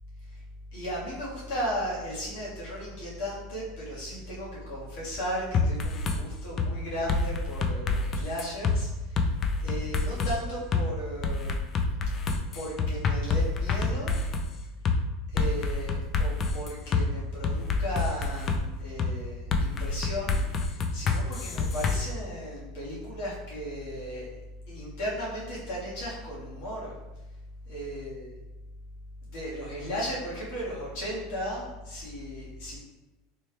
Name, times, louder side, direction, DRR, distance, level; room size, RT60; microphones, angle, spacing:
voice 1, 0.7-9.3 9.6-11.6 12.5-14.2 15.3-24.3 24.7-26.9 27.7-28.3 29.2-32.8, equal, 70° left, -6 dB, 1.4 m, -35 dB
sound 1, 5.5-6.2 6.6-6.7 7.1-8.8 9.2-10.3 10.7-10.8 11.2-14.5 14.9-15.0 15.4-17.0 17.4-18.6 19.0-19.1 19.5-22.0, left 4 dB, 35° left, 0.3 m, -27 dB
4.3 x 3.1 x 2.3 m, 1.1 s
supercardioid pair, 135°, 0 cm